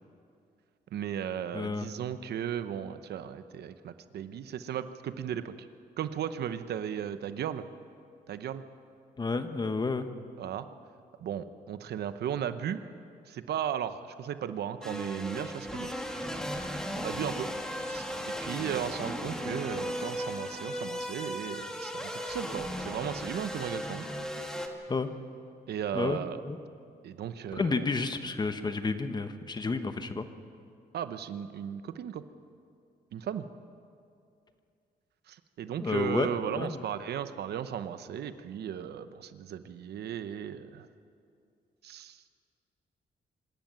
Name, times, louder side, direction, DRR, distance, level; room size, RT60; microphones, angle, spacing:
voice 1, 0.9-5.5 6.0-7.7 8.3-8.6 10.4-10.7 11.2-12.8 13.3-15.9 17.0-24.1 25.7-26.4 27.0-27.9 30.9-32.2 33.1-33.5 35.3-40.9 41.8-42.2, right 9 dB, 80° right, 11 dB, 0.9 m, -36 dB
voice 2, 1.5-1.9 9.2-10.1 24.9-25.1 25.9-26.2 26.4-26.6 27.5-30.3 35.8-36.8, left 3 dB, 25° left, 9 dB, 1.1 m, -31 dB
sound 1, 14.8-24.7, equal, 5° left, 1.8 m, -36 dB
25.5 x 13.0 x 9.1 m, 2.5 s
cardioid pair, 130°, 17 cm